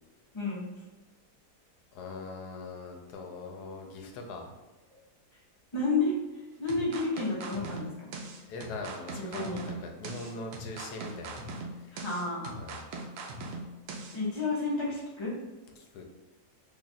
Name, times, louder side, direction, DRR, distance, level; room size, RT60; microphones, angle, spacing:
voice 1, 1.9-4.5 8.4-11.4 11.7-12.0 12.6-12.9 15.8-16.0, left 3 dB, 75° left, 2 dB, 1.2 m, -42 dB
voice 2, 5.7-6.1 6.6-8.1 9.3-9.6 11.9-12.5 14.1-15.3, left 3 dB, 25° left, -6 dB, 0.7 m, -30 dB
sound 1, 6.7-14.2, right 2 dB, 75° right, 1.2 m, -41 dB
3.2 x 2.4 x 4.0 m, 1.2 s
omnidirectional pair, 1.8 m